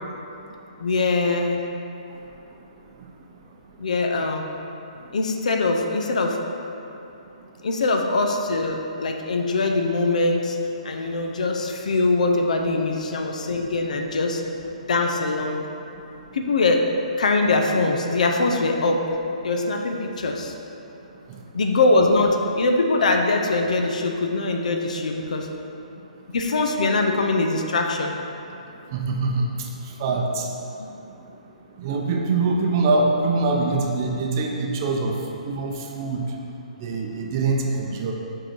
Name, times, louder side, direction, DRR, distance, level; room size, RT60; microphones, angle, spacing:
voice 1, 0.8-1.6 3.8-4.5 5.1-6.4 7.6-10.6 10.8-14.4 14.9-15.7 16.3-16.9 17.2-19.1 19.4-20.5 21.5-25.5 26.3-28.1 30.8-30.9, left 3 dB, 70° left, 3 dB, 0.7 m, -22 dB
voice 2, 28.9-29.5 30.0-30.5 31.8-35.1 35.4-36.2 36.8-38.1, right 3 dB, 30° right, 0 dB, 0.6 m, -23 dB
6.3 x 3.8 x 4.7 m, 2.8 s
hypercardioid pair, 165°, 4 cm